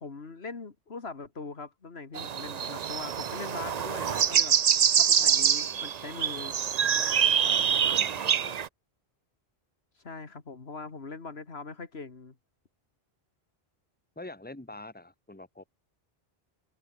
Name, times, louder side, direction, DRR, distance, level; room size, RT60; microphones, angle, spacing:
voice 1, 0.0-4.6 5.0-6.5 7.4-7.9 10.0-12.4, left 4 dB, 70° left, 2.3 m, -41 dB
sound 1, 2.1-8.7, right 8 dB, 45° right, 0.6 m, -25 dB
voice 2, 5.2-5.9 7.4-8.7 14.2-15.7, left 2 dB, 10° left, 2.1 m, -46 dB
open air
omnidirectional pair, 1.1 m